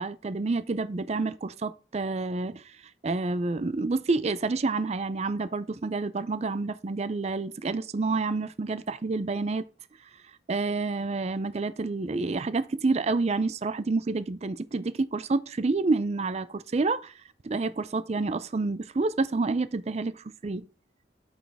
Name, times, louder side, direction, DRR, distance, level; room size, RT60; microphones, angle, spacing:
voice 1, 0.0-2.6 3.0-9.6 10.5-17.1 17.4-20.6, right 3 dB, 35° right, 0.4 m, -28 dB
8.6 x 6.3 x 3.4 m
head